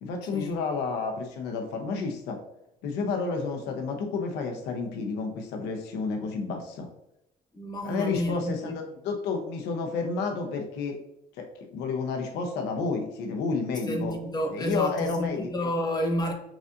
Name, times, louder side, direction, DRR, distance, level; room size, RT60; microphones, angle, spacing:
voice 1, 0.0-2.4 2.8-6.9 7.8-11.0 11.4-14.2 14.5-15.7, left 4 dB, 90° left, 0.7 m, -31 dB
voice 2, 7.5-8.8 13.9-16.3, equal, 25° left, 0.9 m, -30 dB
5.9 x 2.7 x 2.5 m
cardioid pair, 110°, 17 cm